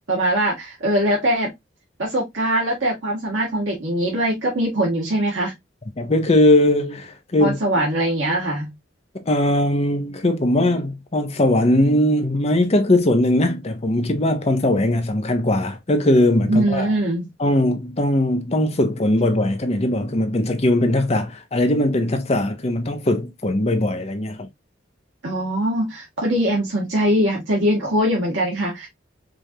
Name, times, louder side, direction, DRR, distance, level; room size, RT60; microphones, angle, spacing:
voice 1, 0.1-1.5 2.0-5.5 7.4-8.7 16.5-17.2 25.2-28.9, right 1 dB, 90° right, 1.6 m, -22 dB
voice 2, 6.0-7.6 9.1-16.9 17.4-24.5, left 1 dB, 35° left, 0.8 m, -20 dB
5.0 x 2.6 x 2.8 m
head